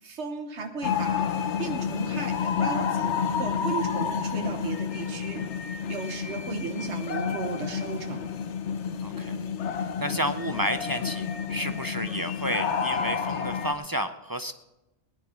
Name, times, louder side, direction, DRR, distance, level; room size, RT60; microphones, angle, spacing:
voice 1, 0.0-1.3 1.6-3.1 3.4-8.2, right 5 dB, 85° right, 6 dB, 1.4 m, -35 dB
sound 1, 0.8-13.7, left 7 dB, 85° left, 1.1 m, -30 dB
voice 2, 9.0-9.3 10.0-14.5, equal, 35° right, 9 dB, 0.3 m, -31 dB
19.5 x 10.0 x 4.4 m, 0.98 s
omnidirectional pair, 1.1 m